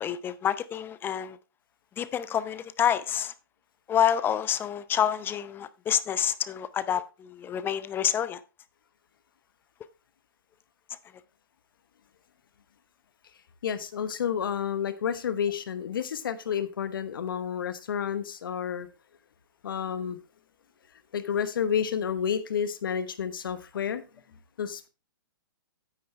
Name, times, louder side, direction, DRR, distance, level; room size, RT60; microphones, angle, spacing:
voice 1, 0.0-1.4 2.0-3.3 3.9-8.4 10.9-11.0, left 9 dB, 20° left, 0.6 m, -28 dB
voice 2, 13.6-18.9 19.6-20.2 21.1-24.0 24.6-24.9, left 8 dB, 70° left, 1.1 m, -30 dB
9.6 x 8.7 x 3.2 m
hypercardioid pair, 125°, 12 cm